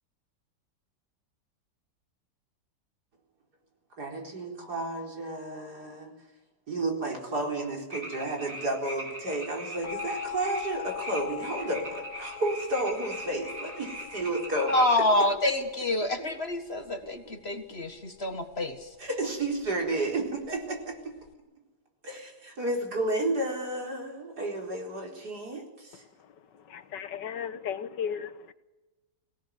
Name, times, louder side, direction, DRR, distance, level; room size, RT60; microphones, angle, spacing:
voice 1, 4.0-6.1 6.7-14.8 19.0-21.1 22.0-26.0, right 2 dB, 65° right, 4.8 m, -32 dB
sound 1, 7.9-15.0, right 1 dB, 50° right, 5.4 m, -40 dB
sound 2, 9.8-21.3, left 14 dB, 60° left, 1.3 m, -43 dB
voice 2, 14.7-18.9, left 1 dB, 35° left, 1.8 m, -27 dB
voice 3, 26.7-28.5, left 8 dB, 85° left, 1.8 m, -35 dB
23.5 x 17.5 x 9.6 m
omnidirectional pair, 1.8 m